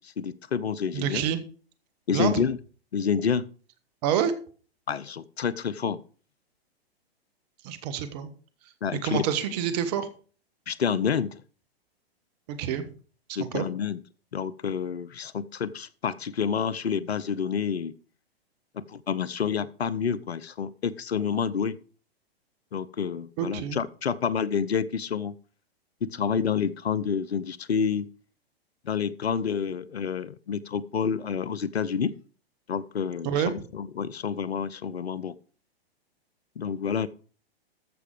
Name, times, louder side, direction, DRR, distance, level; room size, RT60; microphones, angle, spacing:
voice 1, 0.2-1.3 2.1-2.6 2.9-3.5 4.9-6.0 8.8-9.2 10.7-11.3 13.3-14.0 14.3-17.9 18.8-21.8 22.7-25.3 26.0-28.1 28.8-32.1 32.7-35.4 36.6-37.1, left 7 dB, 80° left, 19 dB, 0.8 m, -28 dB
voice 2, 0.9-1.4 2.1-2.4 4.0-4.3 7.6-8.3 8.9-10.1 12.5-12.8 13.5-13.7 23.4-23.8 33.2-33.5, right 9 dB, 40° right, 12 dB, 1.7 m, -27 dB
14.0 x 6.1 x 5.0 m, 0.39 s
hypercardioid pair, 115°, 31 cm